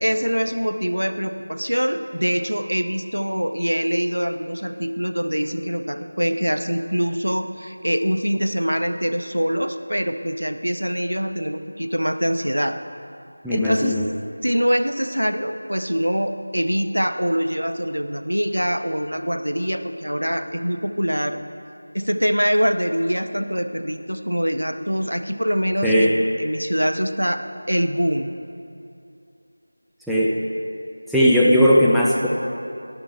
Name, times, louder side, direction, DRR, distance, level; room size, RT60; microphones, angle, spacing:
voice 1, 0.0-12.8 13.5-14.0 14.4-21.4 21.9-28.3, equal, 80° right, 9 dB, 0.7 m, -24 dB
voice 2, 13.4-14.1 25.8-26.1 30.1-30.3 31.1-32.3, equal, ahead, -9 dB, 0.3 m, -17 dB
13.0 x 11.0 x 3.4 m, 2.6 s
figure-of-eight pair, 170°, 0 cm